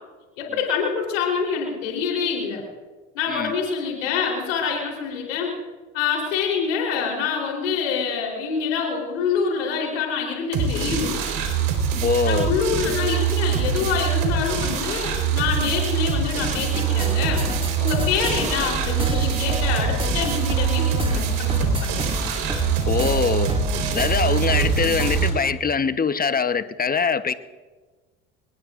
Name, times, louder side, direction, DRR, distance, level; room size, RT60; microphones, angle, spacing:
voice 1, 0.4-2.6 3.1-5.5 5.9-11.2 12.3-17.4 17.8-22.1, left 6 dB, 80° left, 0 dB, 3.9 m, -26 dB
sound 1, 10.5-25.3, right 7 dB, 60° right, 4.2 m, -24 dB
voice 2, 12.0-12.5 22.9-23.5 23.9-27.3, left 6 dB, 25° left, 12 dB, 1.0 m, -23 dB
sound 2, 16.6-25.5, right 1 dB, 15° right, 2.2 m, -30 dB
26.0 x 20.5 x 2.6 m, 1.3 s
hypercardioid pair, 65°, 37 cm